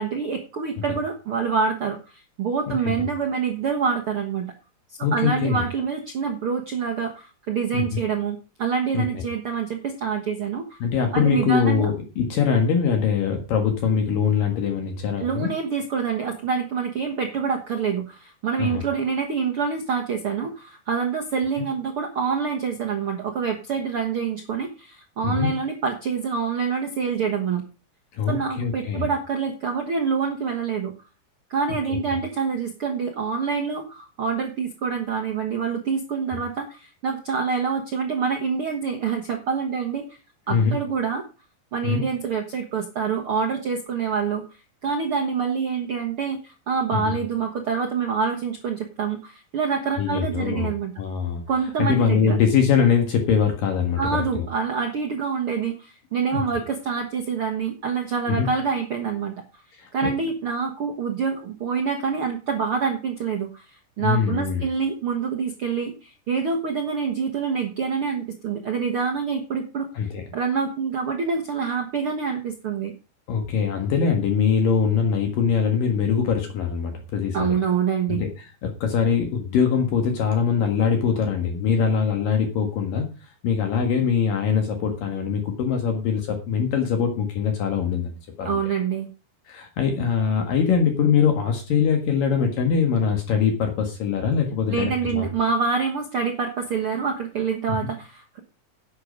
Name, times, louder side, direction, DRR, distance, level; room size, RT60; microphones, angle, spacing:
voice 1, 0.0-4.4 5.1-10.8 11.1-11.9 15.2-27.6 28.3-30.9 31.5-40.0 40.5-41.2 41.7-44.4 44.8-50.9 51.5-52.4 54.0-59.4 59.9-72.9 77.3-78.2 88.4-89.1 94.7-98.4, right 6 dB, 65° right, 2 dB, 1.3 m, -26 dB
voice 2, 2.7-3.1 5.0-5.6 7.7-8.0 8.9-9.2 10.8-15.5 18.6-18.8 25.2-25.5 28.1-29.1 31.9-32.0 36.3-36.4 40.5-40.7 41.8-42.0 46.9-47.1 50.0-50.7 51.0-51.4 51.8-54.5 56.3-56.4 58.3-58.5 59.8-60.1 64.0-64.6 69.9-70.2 73.3-77.5 78.1-78.3 78.6-83.1 83.4-88.1 88.4-88.6 89.5-95.2 97.7-97.8, left 6 dB, 65° left, 3 dB, 3.1 m, -22 dB
11.5 x 8.5 x 5.2 m, 0.33 s
omnidirectional pair, 4.6 m